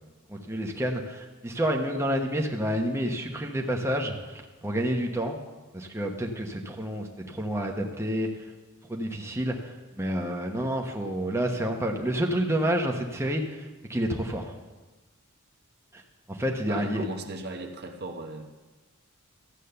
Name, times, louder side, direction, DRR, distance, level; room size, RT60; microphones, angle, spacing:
voice 1, 0.3-5.4 5.7-8.4 8.9-14.4 15.9-16.0 16.3-17.0, equal, 10° right, 1 dB, 1.0 m, -29 dB
voice 2, 16.7-18.4, right 2 dB, 50° right, 4 dB, 1.1 m, -37 dB
13.5 x 8.2 x 6.8 m, 1.2 s
head